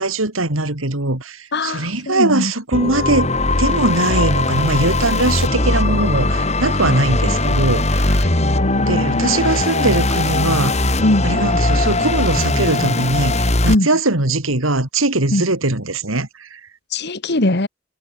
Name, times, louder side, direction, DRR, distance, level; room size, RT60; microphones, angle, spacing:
voice 1, 0.0-3.3 3.6-8.3 8.9-11.0 11.2-16.6, right 2 dB, 85° right, 3.7 m, -20 dB
voice 2, 1.5-2.5 8.2-9.6 11.0-11.3 13.7-13.9 15.3-15.4 16.9-17.7, left 1 dB, 55° left, 1.7 m, -21 dB
sound 1, 2.7-13.7, left 2 dB, 35° left, 3.3 m, -19 dB
head